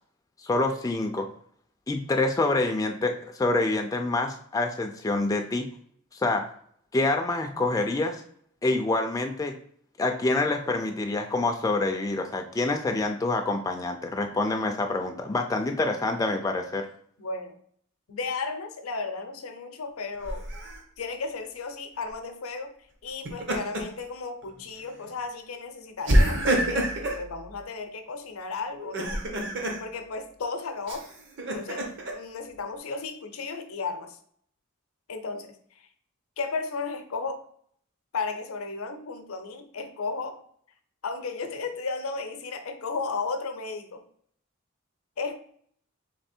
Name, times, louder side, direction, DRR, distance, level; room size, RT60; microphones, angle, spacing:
voice 1, 0.4-1.3 1.9-5.7 6.1-6.5 6.9-8.2 8.6-9.5 10.0-16.9, left 2 dB, 15° left, 4 dB, 0.3 m, -26 dB
voice 2, 17.2-17.6 18.1-20.5 21.0-22.7 23.0-26.9 27.2-29.3 29.8-31.1 31.5-34.2 35.1-35.9 36.4-37.4 38.1-40.4 41.0-44.0 45.2-45.4, left 4 dB, 80° left, 7 dB, 0.6 m, -34 dB
Laughter, 20.2-20.8 23.1-24.0 24.4-24.6 26.1-27.2 28.8-29.8 30.9-32.1, right 1 dB, 55° right, 0.9 m, -26 dB
3.3 x 3.3 x 4.3 m, 0.63 s
head